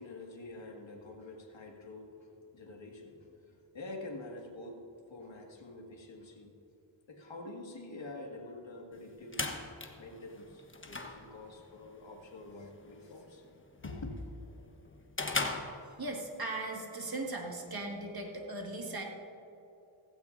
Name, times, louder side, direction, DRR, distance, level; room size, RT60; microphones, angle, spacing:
voice 1, 0.0-6.6 7.1-9.5 10.0-13.5 13.8-14.4, left 2 dB, 60° left, 0 dB, 2.2 m, -46 dB
sound 1, 8.9-16.4, left 3 dB, 25° left, 1.2 m, -41 dB
voice 2, 16.0-19.0, right 2 dB, 45° right, 0 dB, 2.2 m, -38 dB
17.0 x 15.5 x 2.7 m, 3.0 s
wide cardioid pair, 75°, 50 cm